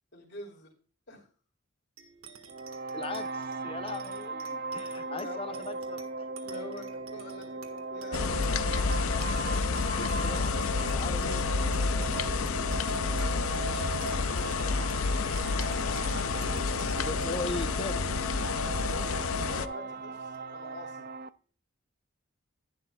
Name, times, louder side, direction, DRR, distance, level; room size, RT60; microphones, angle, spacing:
voice 1, 0.1-0.7 1.1-1.3 5.0-5.6 6.4-8.7 13.6-15.2 19.5-21.1, left 2 dB, 55° left, -5 dB, 2.8 m, -47 dB
sound 1, 2.0-20.8, right 3 dB, 80° right, 1.6 m, -51 dB
sound 2, 2.5-21.3, right 3 dB, 45° right, 0.4 m, -38 dB
voice 2, 2.9-6.3 9.9-11.5 16.7-18.1, left 2 dB, 25° left, 12 dB, 0.6 m, -39 dB
sound 3, 8.1-19.7, left 4 dB, 90° left, 0.6 m, -29 dB
11.0 x 11.0 x 2.3 m, 0.40 s
head